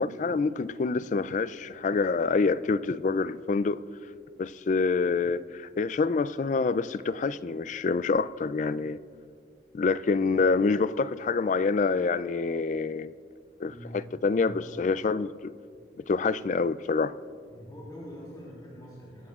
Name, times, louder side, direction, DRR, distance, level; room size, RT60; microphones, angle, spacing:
voice 1, 0.0-3.8 4.4-9.0 9.7-13.1 13.6-13.7 14.2-15.5 16.1-17.1, left 4 dB, 40° left, 0.3 m, -26 dB
voice 2, 13.7-14.0 14.3-14.6 17.5-19.3, equal, 20° left, 3.6 m, -44 dB
24.5 x 13.0 x 2.4 m
head